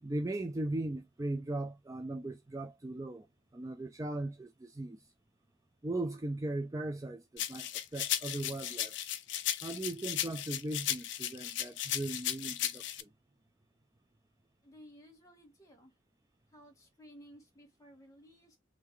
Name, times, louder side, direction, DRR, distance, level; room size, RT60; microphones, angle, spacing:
voice 1, 0.0-3.3 3.5-5.0 5.8-8.9 9.6-13.1, right 2 dB, 15° right, 0.4 m, -38 dB
sound 1, 7.4-13.0, left 11 dB, 60° left, 0.5 m, -36 dB
voice 2, 14.6-15.9 16.5-18.6, equal, 15° left, 1.5 m, -56 dB
3.7 x 3.3 x 3.1 m
head